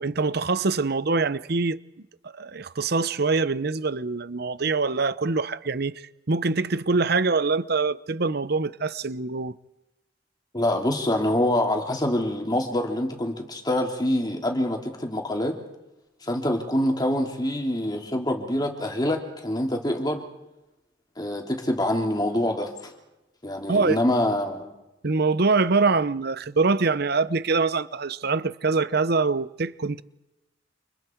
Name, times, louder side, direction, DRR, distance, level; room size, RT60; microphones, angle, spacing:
voice 1, 0.0-1.8 2.3-9.6 23.7-24.0 25.0-30.0, right 4 dB, 55° right, 0.8 m, -24 dB
voice 2, 10.5-15.6 16.2-20.2 21.2-22.9 23.4-24.6, left 1 dB, 20° left, 3.1 m, -25 dB
29.5 x 28.0 x 4.6 m
head